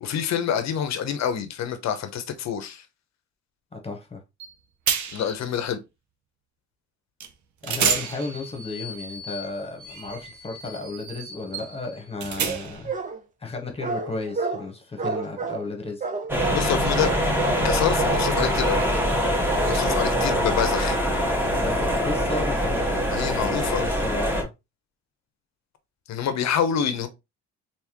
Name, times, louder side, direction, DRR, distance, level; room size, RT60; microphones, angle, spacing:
voice 1, 0.0-2.8 5.1-5.8 16.5-17.1 17.6-18.9 19.7-21.0 23.1-23.8 26.1-27.1, left 8 dB, 60° left, 0.8 m, -27 dB
voice 2, 3.7-4.2 7.6-12.9 13.4-16.0 21.5-22.9 23.2-24.5, left 2 dB, 20° left, 1.3 m, -33 dB
sound 1, 4.4-4.5 4.9-5.4 7.2-7.3 7.6-12.9, right 6 dB, 70° right, 0.8 m, -31 dB
sound 2, 12.4-13.2 13.8-14.7 15.0-15.7 16.0-16.7 17.0-17.7 18.0-18.3 18.7-19.1 19.5-19.8 20.2-20.5, right 4 dB, 25° right, 0.7 m, -30 dB
sound 3, 16.3-24.4, equal, 5° right, 1.2 m, -23 dB
3.5 x 2.9 x 2.9 m
cardioid pair, 90°, 30 cm